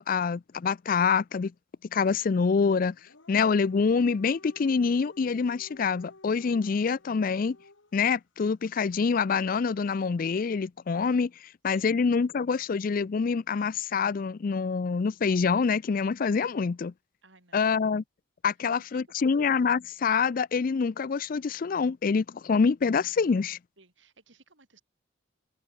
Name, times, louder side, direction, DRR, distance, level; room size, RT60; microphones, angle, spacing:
voice 1, 0.0-1.5 1.9-3.0 3.3-7.6 7.9-11.3 11.6-16.9 17.5-18.0 18.4-23.6, left 5 dB, 45° left, 0.4 m, -26 dB
Dog, 2.9-8.1, left 2 dB, 85° left, 2.7 m, -53 dB
voice 2, 17.2-17.6 18.7-18.9 19.3-19.4 23.8-24.8, right 3 dB, 75° right, 7.1 m, -59 dB
open air
head